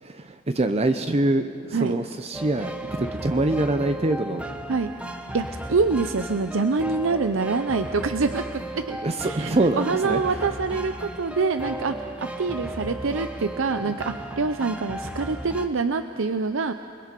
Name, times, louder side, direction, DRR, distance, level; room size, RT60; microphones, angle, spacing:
voice 1, 0.0-2.7 3.0-4.4 9.0-10.4 13.8-13.9, right 2 dB, 30° right, 8 dB, 0.7 m, -24 dB
sound 1, 2.3-15.7, right 1 dB, 5° right, 1.0 m, -35 dB
voice 2, 5.3-12.0 12.2-16.7, right 4 dB, 70° right, 9 dB, 0.6 m, -26 dB
28.5 x 21.0 x 5.3 m, 2.8 s
head